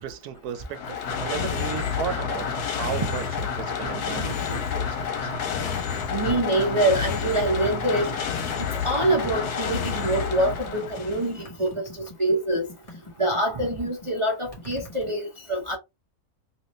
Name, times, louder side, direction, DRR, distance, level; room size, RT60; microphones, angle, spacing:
voice 1, 0.0-3.3 3.5-5.3, right 10 dB, 85° right, 1.1 m, -35 dB
sound 1, 0.5-11.4, left 7 dB, 90° left, 1.3 m, -29 dB
voice 2, 6.1-8.1 8.8-11.9 12.2-12.7 13.2-15.8, right 1 dB, 45° right, 0.4 m, -25 dB
sound 2, 7.2-15.2, left 1 dB, 25° left, 1.4 m, -45 dB
3.0 x 2.9 x 3.1 m
omnidirectional pair, 1.6 m